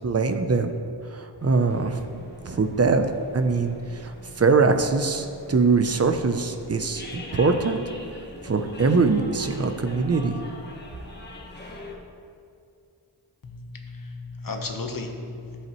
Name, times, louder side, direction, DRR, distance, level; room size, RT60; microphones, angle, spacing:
voice 1, 0.0-0.7 1.1-3.0 3.3-7.8 8.4-10.4, right 4 dB, 35° right, 7 dB, 0.6 m, -23 dB
sound 1, 1.4-11.9, left 1 dB, 25° left, 1.3 m, -43 dB
voice 2, 13.4-15.7, left 3 dB, 50° left, 3 dB, 1.1 m, -35 dB
14.0 x 8.0 x 3.1 m, 2.4 s
wide cardioid pair, 125°, 43 cm